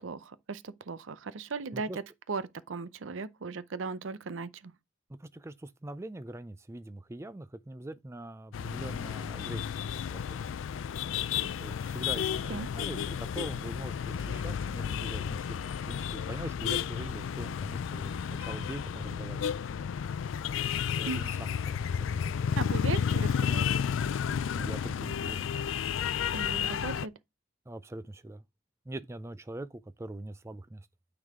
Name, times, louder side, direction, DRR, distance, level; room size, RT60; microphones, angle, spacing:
voice 1, 0.0-2.0 2.3-2.4 2.7-4.7 11.4-11.5 12.5-12.7 21.0-21.4 22.6-23.7 26.3-27.1, right 4 dB, 85° right, 0.6 m, -37 dB
voice 2, 5.1-10.4 11.6-19.5 21.0-22.2 24.5-25.5 27.7-28.4 28.9-30.9, right 1 dB, 15° right, 0.4 m, -43 dB
sound 1, 8.5-27.1, left 7 dB, 80° left, 0.4 m, -32 dB
9.2 x 3.9 x 3.6 m
head